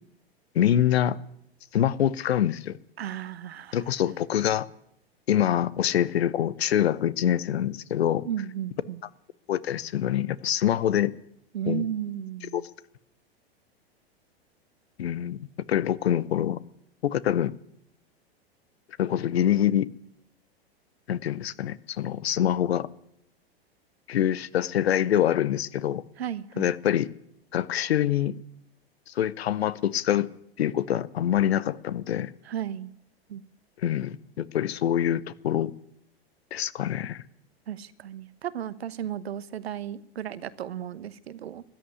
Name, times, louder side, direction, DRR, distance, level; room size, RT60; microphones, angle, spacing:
voice 1, 0.5-1.2 1.7-2.8 3.7-4.7 5.3-8.3 9.5-11.1 11.7-11.8 12.4-12.6 15.0-15.4 15.7-16.6 17.0-17.5 19.0-19.9 21.1-22.9 24.1-26.0 26.6-27.1 27.5-28.4 29.1-30.3 30.6-32.3 33.8-35.7 36.5-37.2, left 11 dB, 75° left, 19 dB, 0.8 m, -25 dB
voice 2, 3.0-3.8 8.2-9.0 11.5-12.6 26.2-26.7 32.5-32.9 33.3-33.4 37.7-41.6, right 10 dB, 75° right, 16 dB, 1.0 m, -34 dB
14.0 x 10.0 x 9.6 m, 0.75 s
hypercardioid pair, 100°, 31 cm